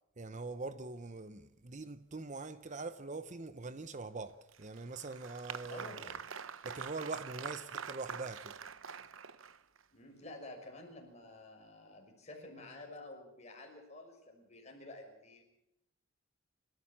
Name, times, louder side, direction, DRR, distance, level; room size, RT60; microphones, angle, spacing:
voice 1, 0.2-6.2 6.6-8.6, right 3 dB, 35° right, 0.8 m, -43 dB
Applause, 4.5-9.8, right 6 dB, 65° right, 0.9 m, -45 dB
voice 2, 5.7-6.2 9.9-15.4, left 2 dB, 30° left, 6.0 m, -50 dB
29.5 x 14.5 x 7.4 m
head